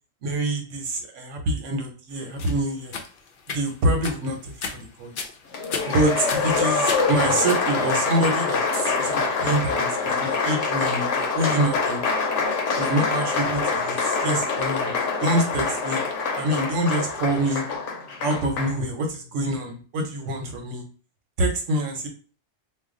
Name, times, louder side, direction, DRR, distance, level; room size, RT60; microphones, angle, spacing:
voice 1, 0.2-2.9 3.5-4.5 5.0-5.2 5.9-12.0 12.7-15.0 15.2-16.0 16.4-17.6 18.2-20.8 21.4-22.1, right 1 dB, 90° right, 4 dB, 1.1 m, -26 dB
sound 1, 2.4-9.7, left 4 dB, 60° left, 0.6 m, -36 dB
Applause, 5.5-18.8, left 4 dB, 80° left, 1.0 m, -25 dB
2.5 x 2.2 x 3.7 m, 0.40 s
omnidirectional pair, 1.2 m